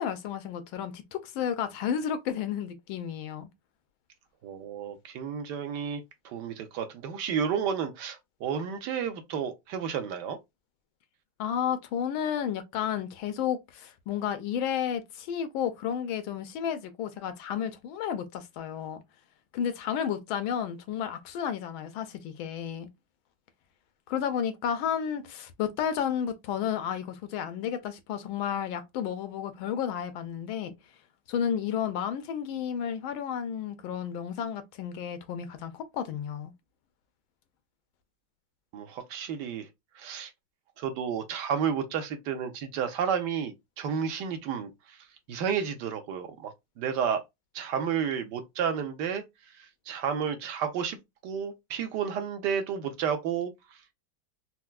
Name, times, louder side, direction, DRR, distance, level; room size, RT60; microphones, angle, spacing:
voice 1, 0.0-3.5 11.4-19.0 19.5-22.9 24.1-30.7 31.3-36.5, left 8 dB, 85° left, 1.4 m, -32 dB
voice 2, 4.4-10.4 38.7-39.7 39.9-40.3 40.8-45.0 45.3-46.5 46.8-47.2 47.5-49.2 49.6-51.0 51.2-53.5, right 7 dB, 70° right, 1.2 m, -31 dB
4.4 x 2.1 x 2.3 m
omnidirectional pair, 2.1 m